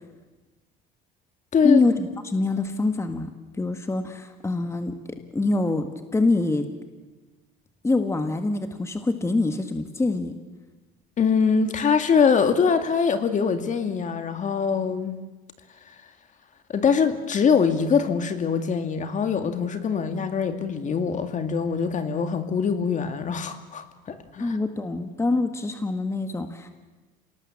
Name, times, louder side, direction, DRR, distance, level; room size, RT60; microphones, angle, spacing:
voice 1, 1.6-3.3 3.6-5.0 5.3-6.6 7.8-10.3 24.4-26.7, left 2 dB, 15° left, 7 dB, 1.7 m, -25 dB
voice 2, 11.2-15.1 16.7-24.6, left 6 dB, 40° left, 8 dB, 2.2 m, -23 dB
27.0 x 19.0 x 7.4 m, 1.2 s
supercardioid pair, 100°, 20 cm